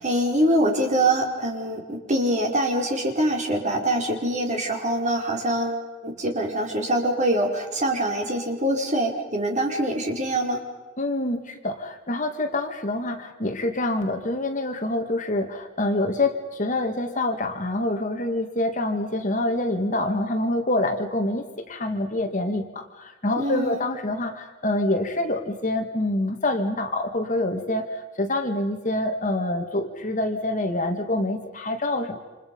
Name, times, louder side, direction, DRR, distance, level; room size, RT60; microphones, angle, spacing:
voice 1, 0.0-10.6 23.4-23.8, right 1 dB, 35° right, 1 dB, 4.7 m, -24 dB
voice 2, 11.0-32.2, left 1 dB, 40° left, 5 dB, 2.1 m, -26 dB
29.5 x 27.5 x 5.5 m, 1.2 s
head